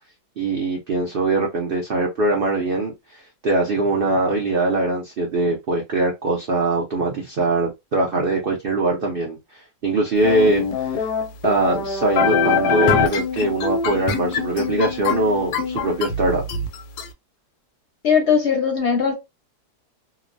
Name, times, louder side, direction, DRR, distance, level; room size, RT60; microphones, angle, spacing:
voice 1, 0.4-11.1 11.4-16.4, right 2 dB, 70° right, 0.5 m, -22 dB
sound 1, 10.2-17.1, left 5 dB, 85° left, 1.2 m, -23 dB
voice 2, 18.0-19.1, left 6 dB, 60° left, 0.8 m, -19 dB
2.9 x 2.0 x 2.5 m
omnidirectional pair, 1.7 m